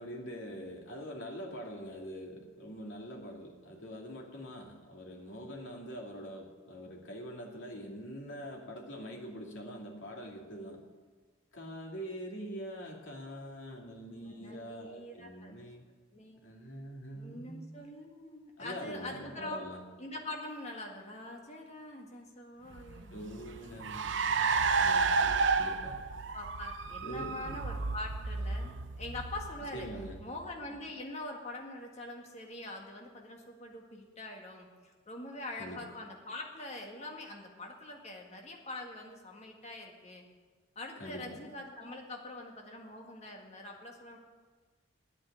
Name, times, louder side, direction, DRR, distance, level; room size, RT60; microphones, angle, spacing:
voice 1, 0.0-10.8 11.5-15.8 16.4-17.8 18.6-19.8 23.1-26.0 27.0-27.5 29.7-30.2 35.6-35.8 41.0-41.4, equal, 85° left, 0 dB, 2.5 m, -44 dB
voice 2, 13.8-15.5 16.1-16.4 17.1-19.6 20.0-23.8 26.3-29.9 30.2-40.3 40.8-44.2, left 2 dB, 35° left, 1 dB, 1.9 m, -44 dB
Car, 22.7-30.5, right 4 dB, 75° right, 0.7 m, -32 dB
9.6 x 8.6 x 9.8 m, 1.4 s
head